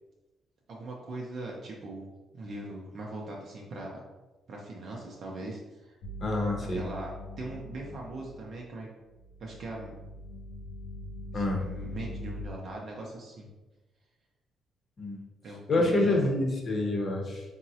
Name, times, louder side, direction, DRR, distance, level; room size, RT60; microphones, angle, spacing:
voice 1, 0.7-2.1 2.3-4.0 4.5-6.0 6.7-7.1 7.4-8.9 9.4-9.9 11.3-13.5 15.4-16.3, right 2 dB, 60° right, -2 dB, 0.5 m, -40 dB
sound 1, 6.0-8.7 9.0-12.5, left 1 dB, 80° left, 0.4 m, -42 dB
voice 2, 6.2-6.8 11.3-11.6 15.0-15.2 15.7-17.4, left 2 dB, 45° left, 1 dB, 0.7 m, -27 dB
3.6 x 2.0 x 2.7 m, 1.1 s
cardioid pair, 90°, 0 cm